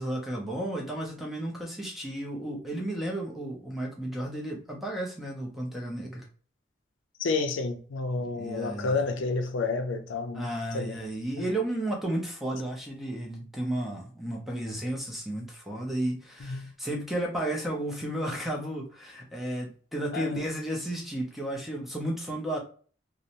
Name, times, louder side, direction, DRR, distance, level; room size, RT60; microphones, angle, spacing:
voice 1, 0.0-6.3 8.3-9.0 10.3-22.6, right 1 dB, ahead, 0.5 m, -33 dB
voice 2, 7.2-11.0 16.4-16.7 20.1-20.4, left 3 dB, 75° left, 0.4 m, -30 dB
2.5 x 2.0 x 2.8 m
head